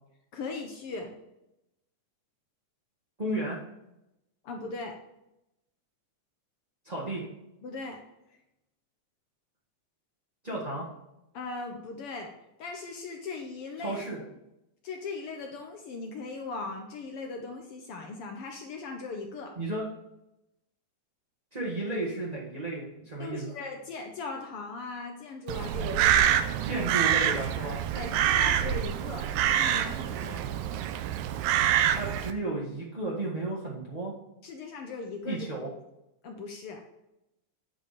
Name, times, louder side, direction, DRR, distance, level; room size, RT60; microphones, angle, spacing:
voice 1, 0.3-1.1 4.4-5.0 7.6-8.0 8.3-8.4 11.3-12.3 12.6-14.0 14.8-19.6 23.2-26.6 27.9-29.3 29.6-30.5 34.4-35.5 36.2-36.8, left 3 dB, 75° left, 3 dB, 1.3 m, -39 dB
voice 2, 3.2-3.6 6.8-7.2 10.4-10.9 13.8-14.2 19.6-19.9 21.5-23.5 26.6-27.8 31.9-34.1 35.3-35.7, right 2 dB, 40° right, -6 dB, 0.5 m, -33 dB
Crow, 25.5-32.3, right 10 dB, 80° right, 1.9 m, -26 dB
9.0 x 5.2 x 4.1 m, 0.88 s
omnidirectional pair, 3.5 m